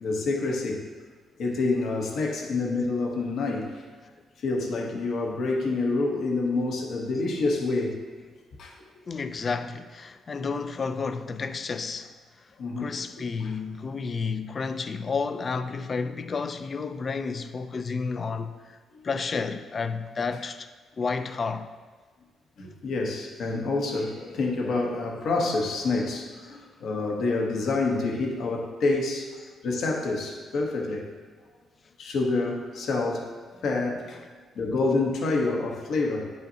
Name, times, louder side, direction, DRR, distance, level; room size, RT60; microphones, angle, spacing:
voice 1, 0.0-0.8 1.4-3.7 4.4-8.0 8.6-8.7 12.6-12.9 13.4-13.5 22.6-29.4 29.6-31.1 32.0-33.3 33.6-34.2 34.5-36.3, left 3 dB, 65° left, 1.0 m, -27 dB
voice 2, 9.1-12.1 12.8-18.8 19.0-20.7 21.0-21.7, left 4 dB, 40° left, 0.4 m, -31 dB
9.1 x 5.5 x 2.8 m
cardioid pair, 105°, 0 cm